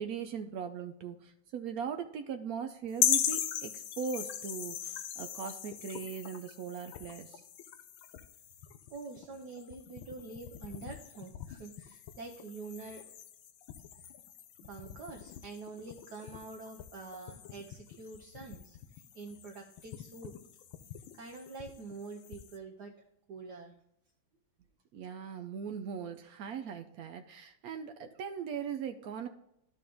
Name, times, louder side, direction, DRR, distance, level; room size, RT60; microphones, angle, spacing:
voice 1, 0.0-7.4 24.9-29.3, right 7 dB, 90° right, 6 dB, 0.8 m, -39 dB
sound 1, 3.0-22.6, left 9 dB, 80° left, 1.5 m, -39 dB
voice 2, 8.9-13.0 14.6-20.3 21.1-22.9 23.3-23.7, right 3 dB, 60° right, 2 dB, 1.3 m, -46 dB
12.5 x 4.3 x 3.5 m, 0.82 s
omnidirectional pair, 2.2 m